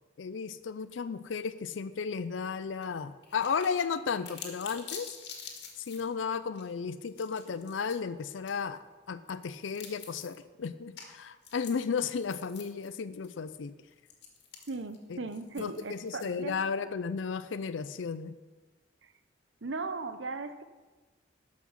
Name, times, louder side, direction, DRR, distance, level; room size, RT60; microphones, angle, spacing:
voice 1, 0.2-5.1 5.8-13.7 15.1-15.2 15.6-18.3, left 5 dB, 80° left, 13 dB, 0.5 m, -34 dB
sound 1, 2.8-2.9 3.2-6.0 6.6-6.7 7.1-8.0 8.5-8.6 9.5-10.4 11.0-11.1 11.4-12.9 13.2-13.3 14.1-16.5, left 6 dB, 65° left, 2.0 m, -47 dB
voice 2, 14.7-16.6 19.6-20.6, right 3 dB, 80° right, 10 dB, 0.8 m, -37 dB
12.0 x 6.0 x 7.4 m, 1.2 s
head